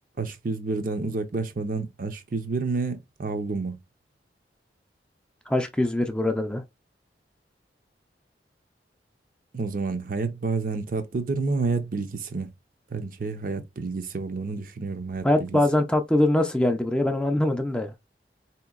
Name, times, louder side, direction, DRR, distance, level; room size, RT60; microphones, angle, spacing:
voice 1, 0.2-3.8 9.5-12.5 12.9-15.6, right 3 dB, 50° right, 0.6 m, -29 dB
voice 2, 5.5-6.6 15.2-17.9, left 1 dB, 5° left, 0.4 m, -23 dB
4.2 x 2.9 x 2.3 m
head